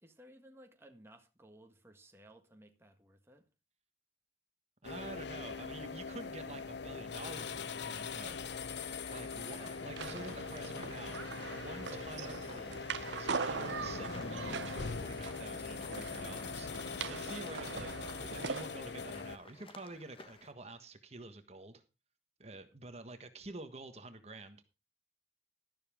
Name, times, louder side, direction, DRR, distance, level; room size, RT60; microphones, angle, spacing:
voice 1, 0.0-3.5 9.3-9.9, right 1 dB, 15° right, 1.5 m, -58 dB
sound 1, 4.8-19.4, left 5 dB, 75° left, 0.8 m, -42 dB
voice 2, 4.8-8.4 9.1-11.2 11.5-21.8 22.4-24.6, right 2 dB, 35° right, 1.4 m, -48 dB
sound 2, 7.8-20.5, left 3 dB, 30° left, 1.3 m, -57 dB
sound 3, 10.0-18.6, right 5 dB, 80° right, 0.6 m, -42 dB
12.5 x 12.0 x 3.6 m
head